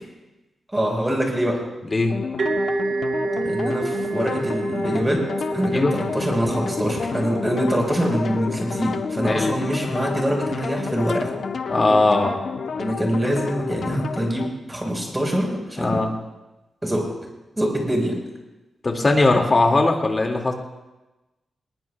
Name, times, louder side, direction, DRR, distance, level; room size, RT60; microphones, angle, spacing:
voice 1, 0.7-1.6 3.4-5.2 5.5-11.3 12.8-16.0 16.8-17.1 17.6-18.1, equal, 15° right, 0 dB, 4.7 m, -24 dB
sound 1, 2.1-14.5, left 5 dB, 60° left, 0.9 m, -30 dB
sound 2, 2.4-9.9, right 4 dB, 60° right, 1.2 m, -30 dB
voice 2, 9.2-9.5 11.7-12.3 15.8-16.1 18.8-20.5, left 2 dB, 30° left, 2 dB, 2.3 m, -19 dB
21.5 x 20.5 x 2.4 m, 1.0 s
wide cardioid pair, 115°, 0 cm